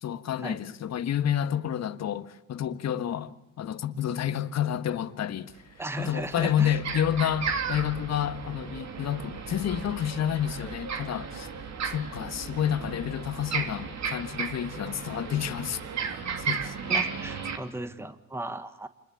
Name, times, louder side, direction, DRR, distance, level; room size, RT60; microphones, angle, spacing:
voice 1, 0.0-5.5 6.0-11.5 11.8-16.7, left 10 dB, 60° left, 1.6 m, -30 dB
sound 1, 5.5-5.6 6.0-17.6, right 6 dB, 65° right, 3.4 m, -34 dB
voice 2, 5.8-6.8 16.9-18.9, right 2 dB, 10° right, 1.5 m, -36 dB
27.5 x 21.5 x 8.6 m
cardioid pair, 90°, 30 cm